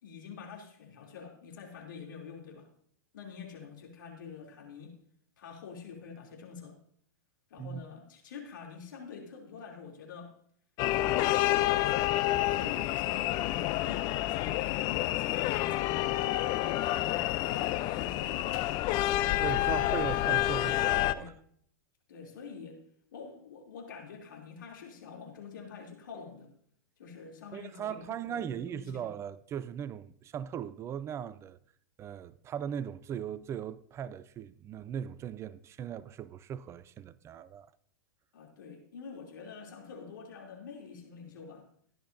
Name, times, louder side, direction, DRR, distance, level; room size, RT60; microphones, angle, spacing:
voice 1, 0.0-2.7 3.1-4.9 5.4-6.7 7.5-10.3 10.9-11.9 12.3-15.9 16.6-18.5 21.1-21.3 22.1-22.8 23.1-26.5 27.0-29.1 38.3-41.7, left 6 dB, 75° left, 3.1 m, -46 dB
sound 1, 10.8-21.1, left 15 dB, 40° left, 0.5 m, -29 dB
voice 2, 19.4-21.3 27.5-31.6 32.0-37.7, right 9 dB, 25° right, 0.5 m, -38 dB
17.0 x 10.5 x 2.7 m
hypercardioid pair, 115°, 11 cm